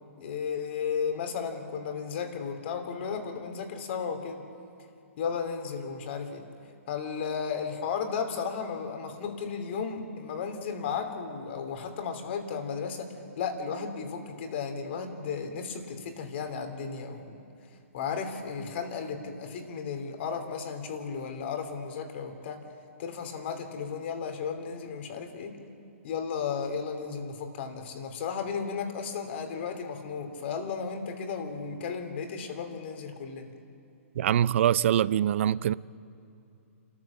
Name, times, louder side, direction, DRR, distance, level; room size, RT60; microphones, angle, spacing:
voice 1, 0.2-4.4 5.2-6.4 6.9-13.1 13.4-17.4 17.9-22.6 23.0-25.5 26.0-33.5, left 6 dB, 50° left, 2.9 m, -34 dB
voice 2, 34.2-35.7, right 10 dB, 60° right, 0.5 m, -24 dB
28.0 x 14.0 x 7.3 m
hypercardioid pair, 145°, 8 cm